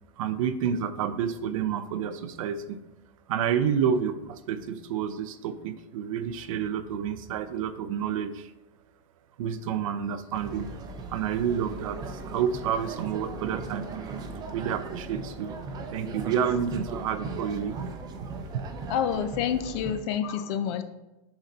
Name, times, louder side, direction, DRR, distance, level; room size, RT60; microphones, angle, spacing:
voice 1, 0.2-2.8 3.3-8.5 9.4-10.7 11.1-12.0 12.3-13.9 14.5-15.6 15.9-17.8 18.5-18.6, right 8 dB, 85° right, 10 dB, 0.7 m, -29 dB
sound 1, 10.3-19.9, right 4 dB, 25° right, 0.6 m, -38 dB
voice 2, 18.9-20.8, left 8 dB, 55° left, 10 dB, 0.6 m, -28 dB
7.0 x 4.0 x 4.1 m, 1.0 s
supercardioid pair, 150°, 17 cm